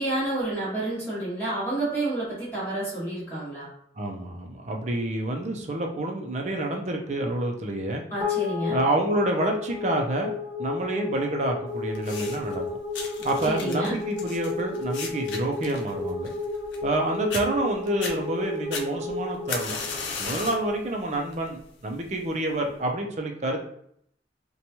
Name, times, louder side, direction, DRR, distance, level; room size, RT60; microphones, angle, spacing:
voice 1, 0.0-3.7 8.1-8.8 13.4-13.9, right 2 dB, 15° left, -9 dB, 0.9 m, -29 dB
voice 2, 4.0-8.0 8.7-10.3 10.6-12.6 13.2-16.3 16.8-19.8 20.2-23.6, right 1 dB, 40° right, 2 dB, 0.4 m, -28 dB
sound 1, 8.2-20.7, left 4 dB, 15° right, 1.0 m, -32 dB
sound 2, 11.9-12.5 12.9-17.0 17.3-17.4 17.9-18.1 18.7-20.7 21.1-21.5 22.3-22.4, left 5 dB, 90° left, 0.5 m, -35 dB
2.9 x 2.2 x 2.8 m, 0.69 s
head